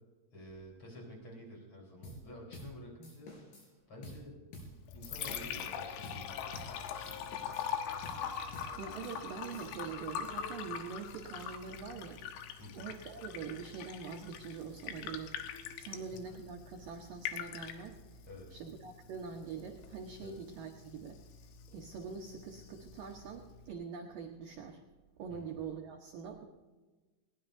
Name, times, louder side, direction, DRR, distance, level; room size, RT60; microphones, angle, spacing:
voice 1, 0.3-3.3 3.9-4.4 4.9-6.4 6.9-7.4 12.6-12.9 15.9-16.0 18.3-18.5 20.2-20.4 25.3-25.6, left 1 dB, 30° left, -1 dB, 4.5 m, -50 dB
sound 1, 2.0-2.3 2.5-2.8 3.0-3.7 4.0-4.3 4.5-4.8 5.0-5.7 6.0-6.3 6.5-6.8 7.0-7.7 8.0-8.3 8.5-8.8 9.0-9.9, left 1 dB, 65° left, 6.3 m, -50 dB
Liquid, 4.7-23.7, left 8 dB, 80° left, 3.7 m, -43 dB
voice 2, 8.8-12.2 12.7-15.3 15.8-18.2 18.5-21.2 21.7-24.8 25.2-26.4, right 6 dB, 85° right, 2 dB, 1.9 m, -44 dB
20.5 x 19.0 x 2.7 m, 1.3 s
omnidirectional pair, 5.6 m